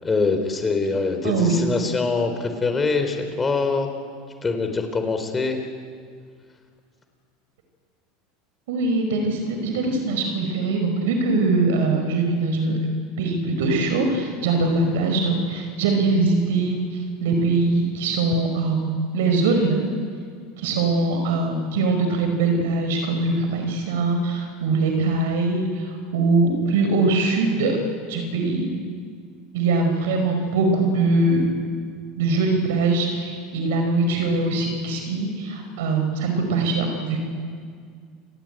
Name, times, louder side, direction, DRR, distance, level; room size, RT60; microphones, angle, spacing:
voice 1, 0.0-3.9 4.4-5.6, left 4 dB, 20° left, 6 dB, 3.9 m, -24 dB
voice 2, 1.2-1.6 8.7-12.8 13.2-19.8 20.6-27.8 28.1-28.7 29.5-31.4 32.2-37.2, right 3 dB, 80° right, 4 dB, 5.1 m, -22 dB
30.0 x 21.0 x 9.2 m, 2.1 s
hypercardioid pair, 95°, 0 cm